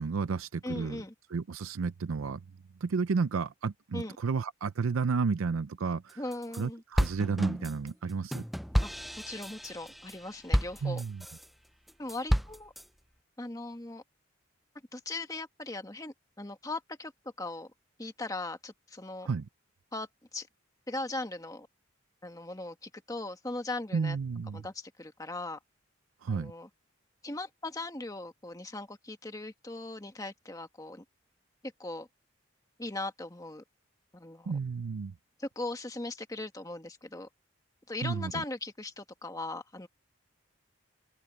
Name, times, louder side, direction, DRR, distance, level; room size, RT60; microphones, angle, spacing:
voice 1, 0.0-1.0 1.3-2.4 2.8-6.2 6.5-8.5 10.8-11.2 19.2-19.4 23.9-24.6 26.2-26.5 34.5-35.1 38.0-38.3, right 5 dB, 80° right, 0.5 m, -32 dB
voice 2, 0.6-1.1 3.9-4.2 6.2-6.8 8.8-8.9 9.3-11.0 12.0-12.7 13.4-14.0 14.9-17.1 17.4-17.7 18.0-19.3 19.9-20.5 20.9-21.7 22.2-24.2 24.5-25.6 26.3-26.7 27.2-31.0 31.6-32.1 32.8-33.6 34.1-34.5 35.4-37.3 37.9-39.9, left 2 dB, 15° left, 1.5 m, -39 dB
sound 1, 6.1-6.6 7.0-11.5 11.9-12.8, equal, ahead, 0.4 m, -31 dB
head